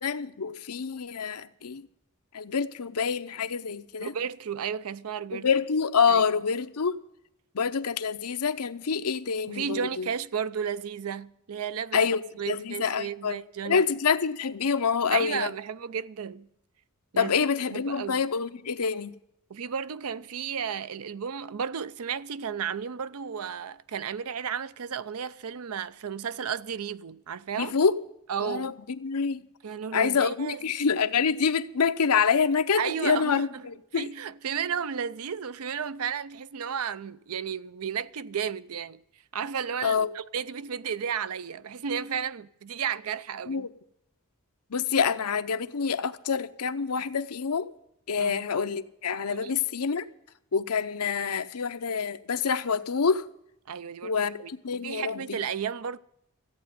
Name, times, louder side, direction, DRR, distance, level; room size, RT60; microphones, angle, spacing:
voice 1, 0.0-1.9 2.3-4.1 5.3-7.0 7.5-10.1 11.9-13.4 13.6-15.5 17.2-19.1 27.6-28.0 28.4-29.4 29.9-34.1 39.8-40.1 43.5-43.7 44.7-47.7 48.1-50.1 50.5-53.2 54.0-55.4, left 6 dB, 80° left, 0.7 m, -27 dB
voice 2, 4.0-5.5 6.1-6.2 9.5-12.0 12.4-13.8 15.1-16.5 17.1-18.2 19.5-27.7 28.3-28.7 29.6-30.6 32.8-33.6 33.9-39.0 39.3-43.7 48.2-48.5 49.3-49.5 53.7-54.1 54.4-56.0, right 7 dB, 70° right, 0.5 m, -33 dB
14.0 x 8.5 x 9.4 m
head